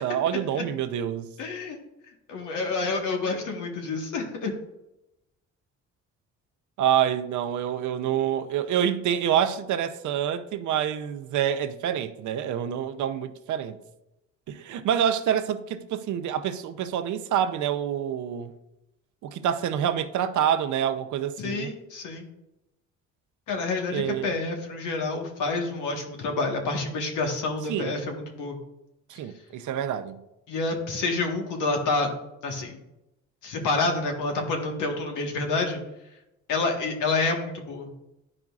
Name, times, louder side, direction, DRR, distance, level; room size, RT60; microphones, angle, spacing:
voice 1, 0.0-1.3 6.8-13.8 14.5-18.5 19.2-21.7 23.9-24.3 27.7-28.0 29.1-30.2, right 9 dB, 75° right, 0.6 m, -27 dB
voice 2, 1.4-1.8 2.3-4.5 21.4-22.3 23.5-28.6 30.5-32.1 32.4-32.8 33.4-35.8 36.5-37.9, left 3 dB, 85° left, 1.5 m, -28 dB
11.0 x 4.9 x 2.4 m
cardioid pair, 90°, 30 cm